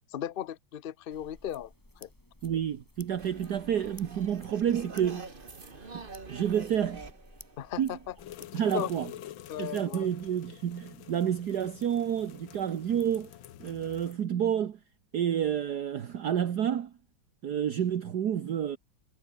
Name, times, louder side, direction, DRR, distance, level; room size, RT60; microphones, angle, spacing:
voice 1, 0.1-1.7 2.0-2.1 7.6-8.9 9.5-10.1, left 10 dB, 70° left, 0.5 m, -37 dB
sound 1, 1.1-8.4, left 1 dB, 10° left, 2.5 m, -55 dB
voice 2, 2.4-5.3 5.8-6.0 6.3-7.1 7.8-8.0 8.5-9.1 9.6-13.3 13.6-14.8 15.1-16.9 17.4-18.8, right 9 dB, 60° right, 1.7 m, -29 dB
sound 2, 3.2-8.3, right 3 dB, 25° right, 2.1 m, -46 dB
sound 3, 8.2-14.1, left 12 dB, 90° left, 1.8 m, -47 dB
omnidirectional pair, 2.1 m